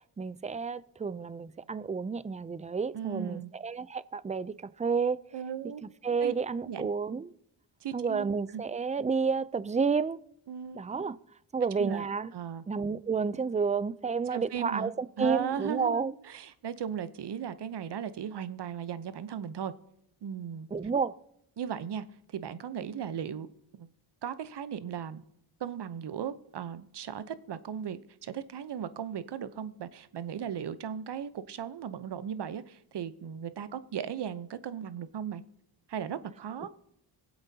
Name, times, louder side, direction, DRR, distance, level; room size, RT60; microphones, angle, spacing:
voice 1, 0.2-5.2 6.0-7.3 7.9-10.2 10.7-11.2 11.5-12.3 12.7-16.1 20.7-21.1, right 5 dB, 15° right, 0.4 m, -30 dB
voice 2, 2.9-3.5 5.3-5.8 6.2-6.3 6.6-6.9 7.8-8.3 8.5-8.6 10.5-10.8 11.8-12.0 12.3-12.6 14.3-14.9 15.2-19.7 20.2-20.7 21.6-22.0 22.3-23.5 23.7-23.9 24.2-25.2 25.6-35.4 35.9-36.7, right 8 dB, 55° right, 0.8 m, -37 dB
22.0 x 7.9 x 2.8 m
cardioid pair, 50°, 49 cm